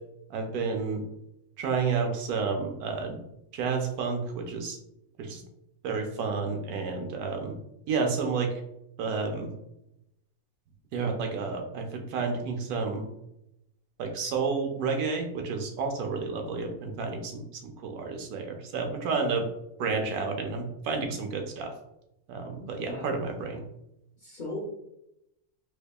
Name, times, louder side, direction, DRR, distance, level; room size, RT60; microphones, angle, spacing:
voice 1, 0.3-1.0 1.6-3.2 3.5-4.8 5.2-5.4 5.8-7.6 7.9-8.5 9.0-9.5 10.9-13.0 14.0-19.5 19.8-21.7 22.3-23.6, right 4 dB, 85° right, 3 dB, 1.1 m, -30 dB
voice 2, 22.6-23.1 24.2-24.7, left 1 dB, 40° left, -3 dB, 0.7 m, -38 dB
4.4 x 2.8 x 2.3 m, 0.86 s
omnidirectional pair, 1.5 m